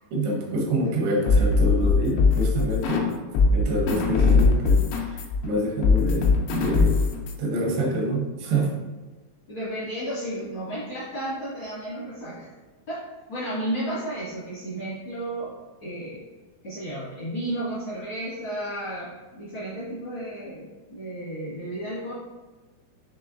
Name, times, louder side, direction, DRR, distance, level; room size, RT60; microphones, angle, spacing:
voice 1, 0.1-3.1 3.5-7.0 7.4-8.7, right 1 dB, 85° right, -1 dB, 3.1 m, -26 dB
sound 1, 1.3-3.1 3.3-7.3, left 4 dB, 85° left, 2.8 m, -20 dB
voice 2, 9.5-12.5 12.9-16.2 16.6-22.1, right 1 dB, 70° left, -11 dB, 1.2 m, -33 dB
7.0 x 3.1 x 2.5 m, 1.2 s
omnidirectional pair, 4.9 m